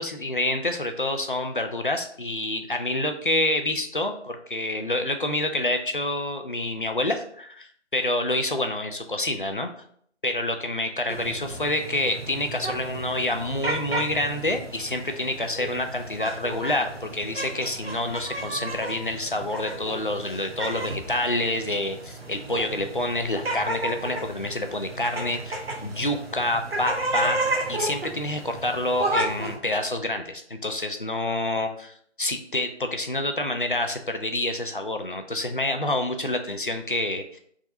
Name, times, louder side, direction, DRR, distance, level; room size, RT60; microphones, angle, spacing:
voice 1, 0.0-9.7 10.2-27.4 27.7-37.4, left 1 dB, 50° left, 5 dB, 0.4 m, -27 dB
sound 1, 11.1-29.6, right 2 dB, 55° right, 0.8 m, -33 dB
3.6 x 2.5 x 4.2 m, 0.62 s
figure-of-eight pair, 160°, 35 cm